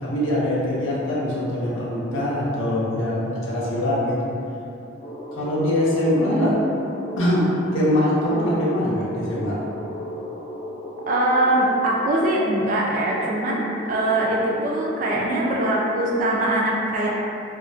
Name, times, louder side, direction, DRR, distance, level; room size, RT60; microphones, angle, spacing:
voice 1, 0.0-4.3 5.4-6.6 7.2-7.5 7.7-9.6, left 1 dB, 80° left, -7 dB, 0.6 m, -23 dB
sound 1, 5.0-16.2, equal, 30° left, 0.4 m, -37 dB
voice 2, 6.2-6.6 11.1-13.6 13.9-17.1, right 1 dB, 40° right, -3 dB, 0.3 m, -22 dB
2.4 x 2.1 x 2.5 m, 2.7 s
head